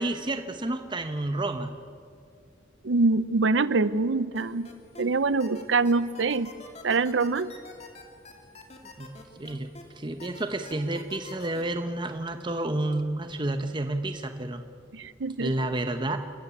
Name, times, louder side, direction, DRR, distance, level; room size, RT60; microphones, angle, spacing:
voice 1, 0.0-1.7 9.0-14.6 15.4-16.2, right 2 dB, 25° right, 8 dB, 0.9 m, -30 dB
voice 2, 2.8-4.7 5.0-6.5 6.8-7.5 14.9-15.5, right 3 dB, 85° right, 16 dB, 0.7 m, -24 dB
sound 1, 4.3-5.0 5.4-9.8 10.2-11.6, left 3 dB, 35° left, 2.5 m, -46 dB
29.0 x 14.0 x 8.5 m, 2.4 s
head